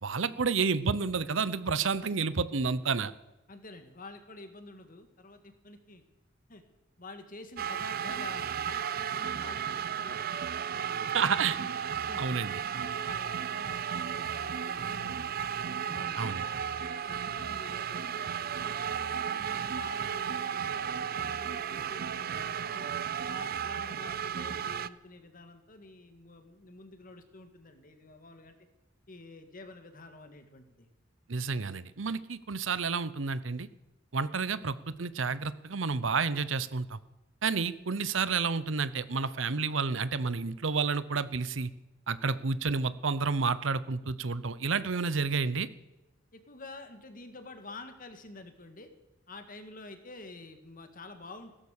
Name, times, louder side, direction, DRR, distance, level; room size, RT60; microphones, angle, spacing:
voice 1, 0.0-3.1 11.1-11.6 12.2-12.6 16.2-16.4 31.3-33.7 34.1-37.0 37.4-41.7 42.1-45.7, right 5 dB, 85° right, 16 dB, 0.8 m, -30 dB
voice 2, 3.5-6.0 6.5-6.6 7.0-10.4 10.7-11.7 12.1-12.2 12.7-15.5 15.8-18.2 18.6-22.9 23.3-28.5 29.1-30.9 46.3-48.9 49.3-51.5, left 2 dB, 45° left, 7 dB, 2.0 m, -49 dB
sound 1, 7.6-24.9, right 8 dB, 50° right, 0.5 m, -34 dB
16.5 x 13.0 x 6.6 m, 0.99 s
head